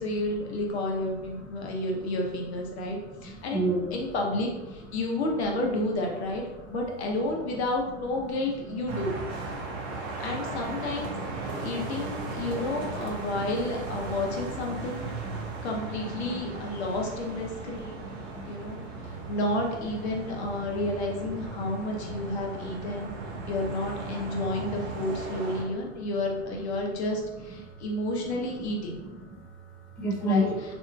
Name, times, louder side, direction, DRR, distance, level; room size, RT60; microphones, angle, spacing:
voice 1, 0.0-6.4 6.7-9.1 10.2-11.1 11.6-15.0 15.6-18.1 18.5-18.8 19.3-23.1 23.5-29.0 30.2-30.5, left 1 dB, 65° left, 0 dB, 0.8 m, -31 dB
voice 2, 1.3-1.7 2.9-4.0 6.6-6.7 11.2-11.3 12.5-12.9 13.1-13.2 15.4-15.5 16.2-16.4 16.7-16.8 17.6-17.7 18.0-18.5 18.9-19.2 20.2-20.3 21.6-21.7 22.2-22.3 22.8-23.1 23.4-23.5 24.3-24.6 25.4-25.5 29.0-29.4 30.0-30.4, right 2 dB, 5° left, -6 dB, 0.3 m, -33 dB
sound 1, 8.9-25.6, right 3 dB, 40° right, 0.6 m, -37 dB
2.8 x 2.5 x 2.3 m, 1.1 s
hypercardioid pair, 110°, 35 cm